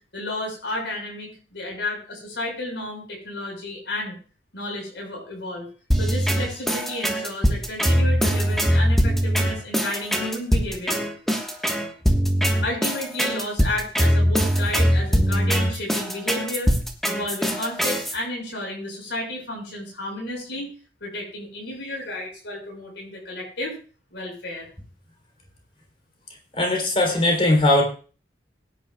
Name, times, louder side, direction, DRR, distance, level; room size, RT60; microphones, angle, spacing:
voice 1, 0.1-4.1 4.5-5.7 5.9-11.0 12.6-16.7 17.0-20.7 21.0-23.8 24.1-24.7, left 1 dB, 85° left, -1 dB, 5.8 m, -32 dB
sound 1, 5.9-18.1, equal, ahead, 1.4 m, -21 dB
voice 2, 26.5-27.8, left 1 dB, 30° left, 0 dB, 3.4 m, -19 dB
21.0 x 10.0 x 2.3 m, 0.38 s
head